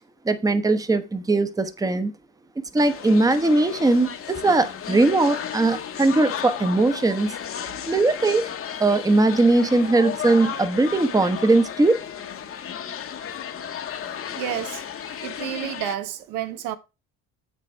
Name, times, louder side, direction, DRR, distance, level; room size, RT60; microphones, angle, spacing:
voice 1, 0.2-2.1 2.7-7.3 7.9-8.5 8.8-12.0, right 2 dB, 10° right, 1.0 m, -20 dB
sound 1, 2.8-15.9, left 9 dB, 45° left, 1.2 m, -34 dB
voice 2, 14.3-14.8 15.2-16.8, right 11 dB, 85° right, 1.2 m, -30 dB
7.5 x 6.3 x 4.5 m
cardioid pair, 95°, 31 cm